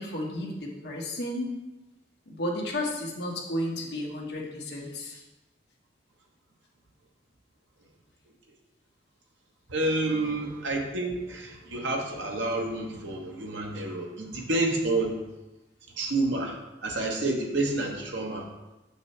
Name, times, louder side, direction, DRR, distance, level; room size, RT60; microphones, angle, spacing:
voice 1, 0.0-1.5 2.3-5.2 10.1-10.3, left 1 dB, 60° left, -2 dB, 1.3 m, -33 dB
voice 2, 9.7-15.2 16.0-18.5, right 2 dB, 80° right, 1 dB, 1.1 m, -29 dB
6.8 x 6.1 x 3.2 m, 1.0 s
head